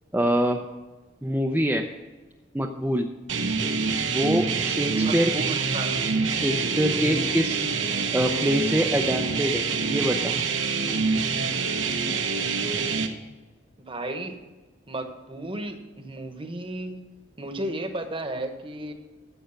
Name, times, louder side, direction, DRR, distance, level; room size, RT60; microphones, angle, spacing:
voice 1, 0.1-0.6 1.2-1.9 2.5-3.1 4.1-5.3 6.3-7.7 8.1-10.3, equal, 10° right, 1 dB, 0.5 m, -25 dB
sound 1, 3.3-13.1, right 5 dB, 80° right, 1.1 m, -26 dB
voice 2, 4.9-6.0 13.8-14.4 14.9-17.0 17.4-18.9, right 1 dB, 30° right, 6 dB, 1.1 m, -34 dB
11.5 x 7.9 x 5.8 m, 1.2 s
head